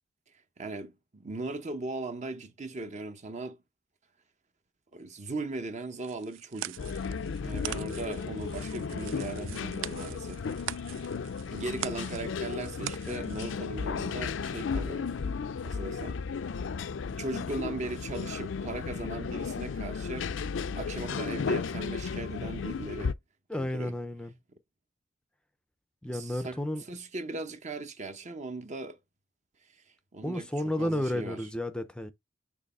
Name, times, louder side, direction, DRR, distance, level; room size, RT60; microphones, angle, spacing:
voice 1, 0.6-3.6 4.9-6.8 7.4-10.4 11.5-15.1 15.6-16.2 17.0-20.3 20.7-23.1 23.5-23.9 26.1-26.6 26.9-29.0 30.1-31.5, right 2 dB, 40° right, 0.8 m, -38 dB
sound 1, 6.0-13.6, right 13 dB, 85° right, 0.3 m, -43 dB
sound 2, 6.8-23.1, left 5 dB, 70° left, 0.4 m, -34 dB
voice 2, 23.5-24.3 26.0-26.8 30.2-32.1, left 1 dB, 5° left, 0.5 m, -32 dB
6.5 x 3.0 x 5.3 m
head